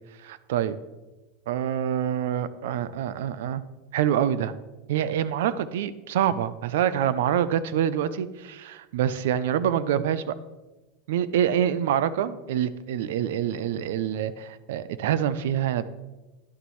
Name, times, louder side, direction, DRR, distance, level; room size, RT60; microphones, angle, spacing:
voice 1, 0.2-0.8 1.5-3.6 3.9-4.5 4.9-10.4 11.1-15.9, right 10 dB, 80° right, 15 dB, 0.5 m, -26 dB
11.0 x 6.8 x 3.1 m, 1.1 s
supercardioid pair, 160°, 0 cm